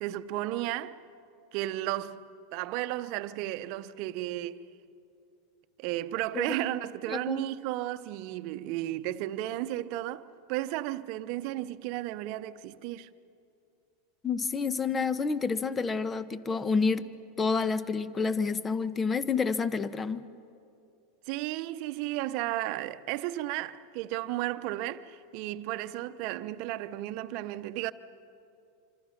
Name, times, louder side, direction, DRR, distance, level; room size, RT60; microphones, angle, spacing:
voice 1, 0.0-1.0 1.5-4.7 5.8-10.2 10.5-13.1 21.3-27.9, right 15 dB, 55° right, 0.8 m, -34 dB
voice 2, 7.1-7.4 14.2-17.1 17.4-20.2, left 5 dB, 20° left, 1.1 m, -29 dB
26.0 x 25.5 x 5.9 m
hypercardioid pair, 100°, 0 cm